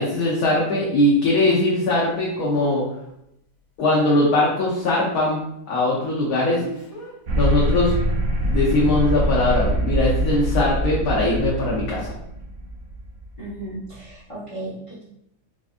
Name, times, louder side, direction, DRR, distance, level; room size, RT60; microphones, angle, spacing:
voice 1, 0.0-2.8 3.8-5.4 5.7-6.6 7.3-7.9 8.5-12.1, left 2 dB, 70° left, -5 dB, 1.2 m, -20 dB
Speech, 1.2-1.3 6.5-7.1 8.4-8.6, right 1 dB, 15° left, 0.8 m, -39 dB
sound 1, 7.3-13.8, right 1 dB, 75° right, 1.1 m, -24 dB
voice 2, 13.4-15.0, right 2 dB, 45° left, -7 dB, 0.4 m, -35 dB
4.3 x 2.4 x 2.4 m, 0.81 s
omnidirectional pair, 1.8 m